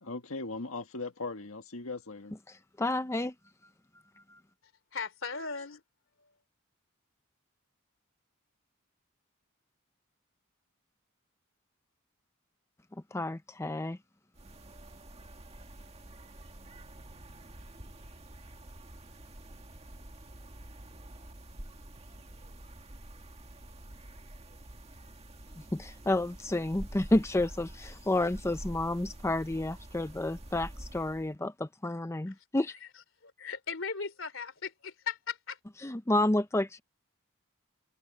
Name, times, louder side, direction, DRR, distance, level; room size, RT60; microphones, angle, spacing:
voice 1, 0.0-2.3, left 3 dB, 85° left, 1.7 m, -39 dB
voice 2, 2.8-3.3 13.1-14.0 25.7-32.7 35.8-36.8, left 1 dB, 15° left, 0.5 m, -30 dB
voice 3, 4.9-5.8 32.3-32.4 33.2-35.6, left 5 dB, 65° left, 3.3 m, -37 dB
sound 1, 14.3-31.3, right 1 dB, 30° right, 2.0 m, -48 dB
head